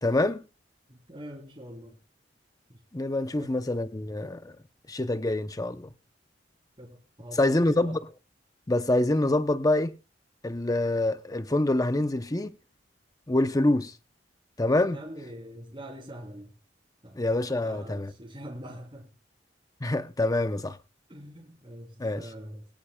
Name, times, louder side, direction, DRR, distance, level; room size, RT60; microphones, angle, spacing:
voice 1, 0.0-0.4 2.9-4.6 4.9-5.9 7.3-8.0 8.7-10.0 10.4-12.6 13.3-13.9 14.6-15.0 17.2-18.1 19.8-20.8 22.0-22.3, left 2 dB, 20° left, 0.8 m, -26 dB
voice 2, 0.9-2.0 2.7-2.8 3.4-3.6 6.8-8.0 14.9-16.5 17.0-17.2 17.6-19.1 21.1-22.7, equal, 30° right, 3.7 m, -44 dB
22.5 x 13.0 x 2.4 m
head